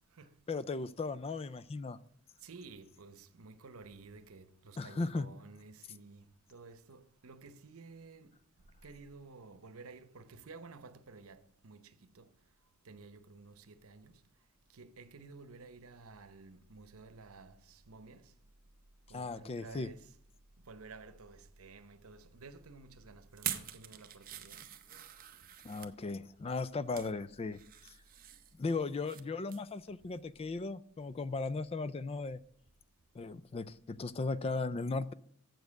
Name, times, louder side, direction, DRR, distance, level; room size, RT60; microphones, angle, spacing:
voice 1, 0.5-2.0 4.8-5.3 19.1-19.9 25.6-27.9 28.6-32.4 33.1-35.1, left 3 dB, 30° left, 0.3 m, -37 dB
voice 2, 2.4-8.4 8.8-12.3 12.8-14.2 14.7-18.3 19.1-20.2 20.6-24.6, right 3 dB, 90° right, 0.8 m, -53 dB
sound 1, 23.3-25.9 26.6-27.1 27.5-29.2 29.5-29.7 30.1-30.2, right 11 dB, 45° right, 0.7 m, -44 dB
7.7 x 7.2 x 6.4 m
head